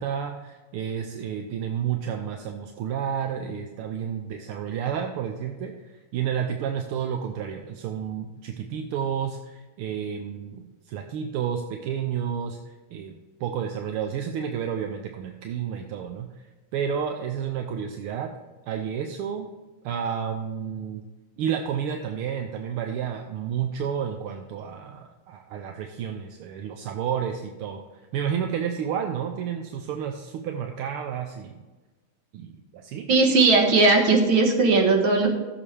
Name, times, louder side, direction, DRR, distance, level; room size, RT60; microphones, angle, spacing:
voice 1, 0.0-16.4 16.7-18.3 18.6-19.5 19.8-21.0 21.4-27.8 28.1-31.6 32.3-33.1, right 8 dB, 80° right, 4 dB, 1.7 m, -31 dB
voice 2, 33.1-35.3, right 3 dB, 65° right, 2 dB, 2.4 m, -18 dB
15.0 x 7.4 x 3.4 m, 1.2 s
omnidirectional pair, 2.4 m